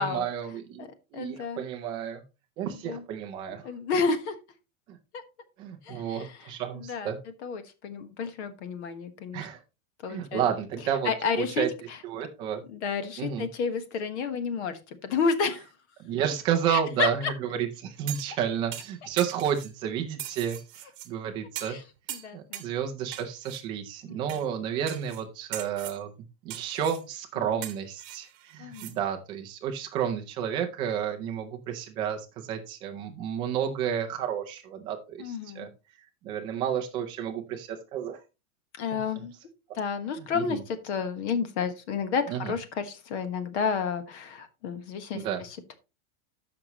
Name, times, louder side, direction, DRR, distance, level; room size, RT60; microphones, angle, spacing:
voice 1, 0.0-2.2 2.6-3.7 4.9-5.0 5.6-7.2 9.3-9.6 10.1-11.7 12.0-12.6 13.2-13.5 16.0-21.8 22.3-26.1 26.4-35.7 36.2-38.2 38.9-39.0 40.2-40.6 42.3-42.5 45.1-45.4, right 9 dB, 10° right, 4 dB, 0.4 m, -31 dB
voice 2, 1.1-1.6 2.8-3.0 3.6-4.4 5.8-6.3 6.7-7.1 7.4-9.5 10.0-10.4 11.0-12.0 12.7-15.7 16.7-17.3 21.6-21.8 22.1-22.6 24.1-24.4 27.4-27.5 28.6-29.0 35.2-35.7 38.8-39.3 39.7-45.7, left 5 dB, 55° left, 10 dB, 1.4 m, -31 dB
sound 1, 18.1-18.4 18.7-19.7 20.2-21.1 21.6-21.8 22.1-22.7 23.1-23.6 24.3-24.4 24.9-25.2 25.5-26.0 26.5-27.0 27.6-28.9 29.3-29.4, right 13 dB, 40° right, 1.1 m, -40 dB
13.5 x 6.0 x 3.0 m, 0.28 s
supercardioid pair, 180°, 41 cm